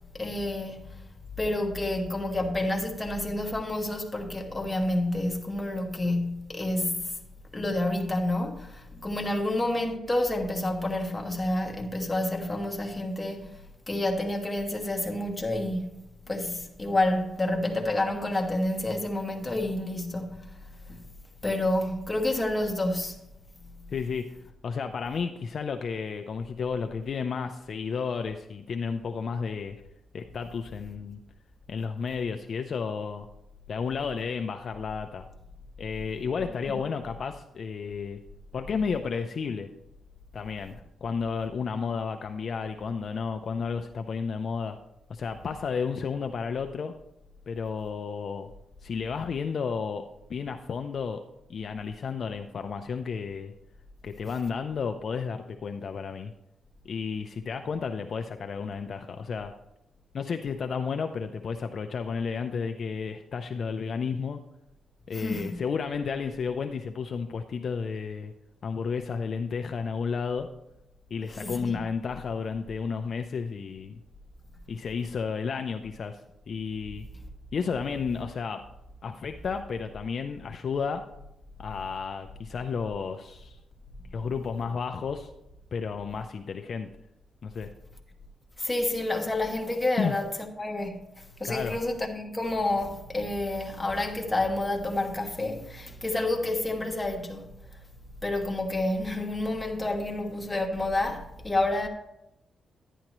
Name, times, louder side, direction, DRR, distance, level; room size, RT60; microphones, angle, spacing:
voice 1, 0.1-0.8 1.4-7.2 7.5-13.6 13.9-16.0 16.3-20.5 20.9-21.0 21.4-23.2 65.1-65.6 71.3-71.8 88.6-90.3 90.6-97.5 98.2-101.9, left 1 dB, 15° left, 1.3 m, -29 dB
voice 2, 23.9-24.4 24.6-29.7 30.1-31.2 31.7-33.3 33.7-35.3 35.8-38.2 38.5-39.7 40.3-44.8 45.1-46.9 47.5-48.5 48.8-51.2 51.5-53.5 54.0-56.3 56.8-59.5 60.1-64.4 65.1-68.3 68.6-70.5 71.1-74.0 74.7-76.2 76.5-77.0 77.5-78.6 79.0-81.0 81.6-83.6 84.1-85.3 85.7-86.9 87.4-87.7 90.0-90.2 91.4-91.8, left 5 dB, 50° left, 0.5 m, -32 dB
10.5 x 10.0 x 3.0 m
cardioid pair, 125°, 0 cm